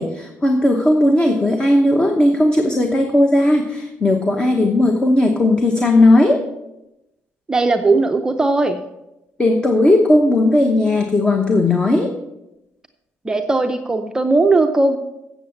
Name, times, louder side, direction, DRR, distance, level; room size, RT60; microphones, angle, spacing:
voice 1, 0.0-6.4 9.4-12.1, left 1 dB, 20° left, 4 dB, 0.9 m, -16 dB
voice 2, 7.5-8.8 13.2-15.0, right 3 dB, 15° right, 5 dB, 0.5 m, -17 dB
8.1 x 7.1 x 7.1 m, 0.90 s
cardioid pair, 140°, 5 cm